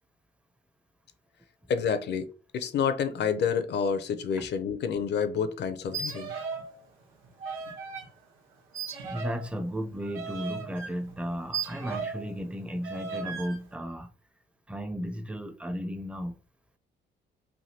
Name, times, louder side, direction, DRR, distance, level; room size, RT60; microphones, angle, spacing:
voice 1, 1.7-6.3, left 6 dB, 60° left, 0.5 m, -29 dB
sound 1, 5.8-6.7 7.0-8.1 8.7-12.3 12.8-13.6, right 5 dB, 90° right, 1.0 m, -37 dB
voice 2, 9.1-14.1 14.7-16.4, equal, 5° right, 0.5 m, -34 dB
3.4 x 2.2 x 2.7 m
cardioid pair, 90°, 20 cm